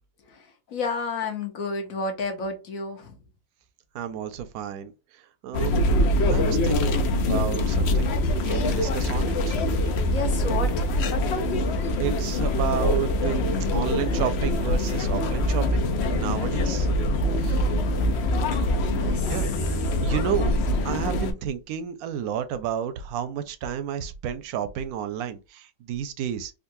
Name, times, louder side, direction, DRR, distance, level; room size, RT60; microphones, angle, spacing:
voice 1, 0.2-3.2 10.1-11.0 18.9-20.1 20.5-20.7, left 4 dB, 60° left, 1.2 m, -32 dB
voice 2, 3.9-4.9 5.4-5.8 6.3-8.2 8.5-9.6 12.0-13.4 13.7-15.9 16.2-16.9 17.4-17.7 19.3-19.5 20.0-26.5, right 9 dB, 70° right, 1.0 m, -31 dB
sound 1, 5.5-21.3, left 1 dB, 90° left, 0.5 m, -24 dB
3.9 x 2.4 x 2.6 m
omnidirectional pair, 1.8 m